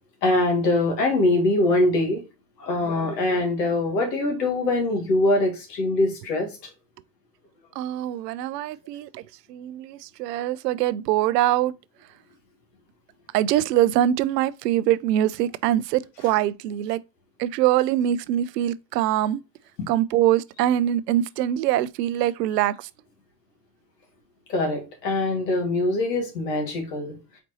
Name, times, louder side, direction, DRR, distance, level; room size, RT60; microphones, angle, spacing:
voice 1, 0.2-2.2 2.6-6.5 19.8-19.9 24.5-27.2, left 2 dB, 85° left, 1.9 m, -23 dB
voice 2, 7.8-9.2 9.5-11.7 13.3-17.0 17.4-19.4 19.9-22.9, right 12 dB, 80° right, 0.5 m, -23 dB
4.3 x 4.0 x 2.7 m
hypercardioid pair, 85°, 48 cm